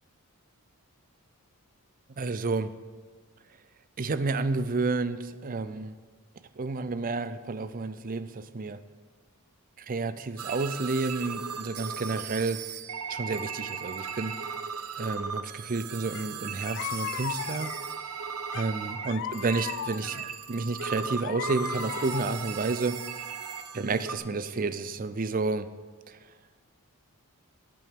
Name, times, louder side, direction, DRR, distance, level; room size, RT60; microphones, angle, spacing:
voice 1, 2.2-2.7 4.0-6.0 6.6-8.8 9.8-12.6 13.1-14.3 15.0-17.7 18.5-20.2 20.5-23.0 23.7-25.7 26.1-26.2, right 3 dB, 40° right, 12 dB, 0.5 m, -30 dB
sound 1, 10.4-24.2, right 6 dB, 80° right, 0.8 m, -37 dB
sound 2, 16.1-16.3 16.6-18.0 18.5-20.3 20.8-22.6, left 10 dB, 55° left, 0.3 m, -37 dB
18.0 x 8.6 x 3.6 m, 1.4 s
head